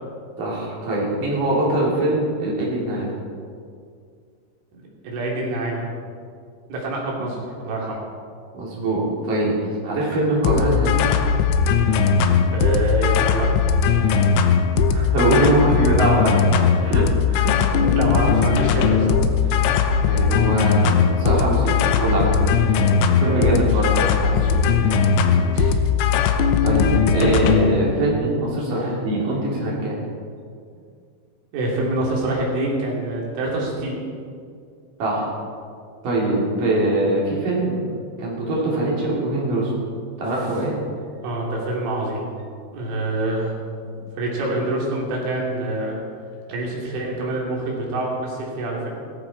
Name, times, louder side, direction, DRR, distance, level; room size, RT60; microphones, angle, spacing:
voice 1, 0.4-3.1 8.5-11.1 14.9-16.3 16.8-17.0 17.3-17.6 20.1-22.6 23.2-24.6 26.6-30.0 35.0-35.3 36.0-37.8 38.2-39.7 40.2-40.7, right 1 dB, 45° right, -5 dB, 4.9 m, -22 dB
voice 2, 4.7-5.9 6.7-8.0 12.5-13.7 17.8-19.2 23.3-23.7 25.3-25.8 28.7-28.9 31.5-34.0 41.2-42.2 42.7-46.0 46.5-48.9, right 2 dB, 85° right, -3 dB, 5.6 m, -26 dB
sound 1, 10.5-27.8, left 6 dB, 85° left, 3.3 m, -19 dB
17.0 x 14.5 x 4.7 m, 2.2 s
omnidirectional pair, 5.4 m